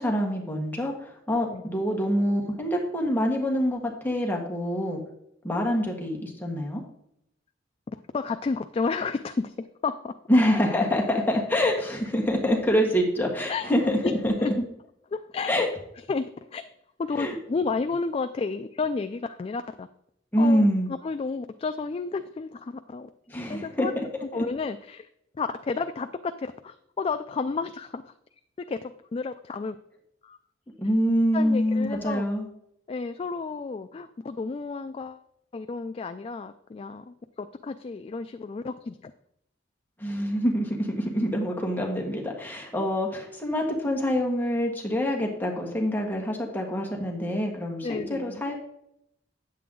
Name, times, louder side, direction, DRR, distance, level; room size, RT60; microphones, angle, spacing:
voice 1, 0.0-5.0 5.4-6.8 10.3-14.0 14.2-14.5 15.5-15.7 17.2-17.3 20.3-20.9 23.3-24.0 24.3-24.4 30.8-32.5 40.0-48.5, equal, 10° left, 0 dB, 1.5 m, -25 dB
voice 2, 7.9-10.2 13.5-14.5 15.1-15.7 16.1-16.7 17.0-19.9 20.4-20.7 21.0-23.1 23.5-23.9 24.2-25.1 25.3-28.1 28.6-29.8 30.2-30.4 31.3-32.3 32.9-35.2 35.5-39.1 47.8-48.4, left 4 dB, 30° left, 9 dB, 0.3 m, -32 dB
9.3 x 7.7 x 3.7 m, 0.76 s
head